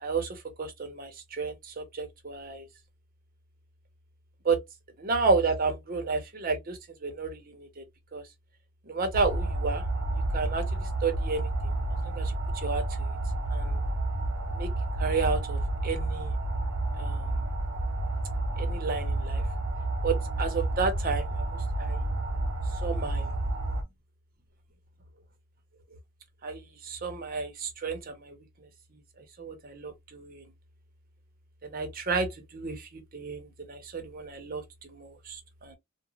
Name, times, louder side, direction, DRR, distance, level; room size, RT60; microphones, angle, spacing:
voice 1, 0.0-2.7 4.4-4.6 5.0-7.8 8.1-8.2 8.9-9.8 10.3-11.7 12.0-13.1 13.5-13.8 14.5-14.7 15.0-16.3 17.0-17.5 18.6-19.4 20.0-21.5 21.8-22.0 22.8-23.3 26.4-28.4 29.4-30.5 31.6-35.8, right 4 dB, 45° right, 0.7 m, -32 dB
sound 1, 9.1-23.8, right 2 dB, 85° right, 0.6 m, -30 dB
2.4 x 2.0 x 3.0 m
head